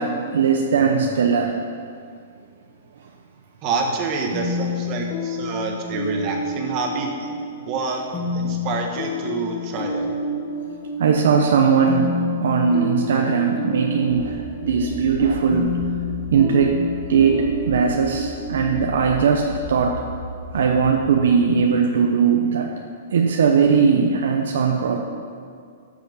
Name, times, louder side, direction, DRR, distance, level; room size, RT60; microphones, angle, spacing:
voice 1, 0.0-1.5 11.0-12.1 12.4-15.7 16.3-16.8 17.1-20.0 20.5-22.7 23.1-25.0, right 6 dB, 75° right, 1 dB, 0.9 m, -19 dB
voice 2, 3.6-7.1 7.6-8.0 8.3-10.1, right 4 dB, 30° right, 2 dB, 1.5 m, -27 dB
sound 1, 4.3-19.9, left 3 dB, 20° left, 1.9 m, -29 dB
sound 2, 14.1-21.7, left 2 dB, 80° left, 3.0 m, -35 dB
13.5 x 7.2 x 5.5 m, 2.2 s
hypercardioid pair, 165°, 0 cm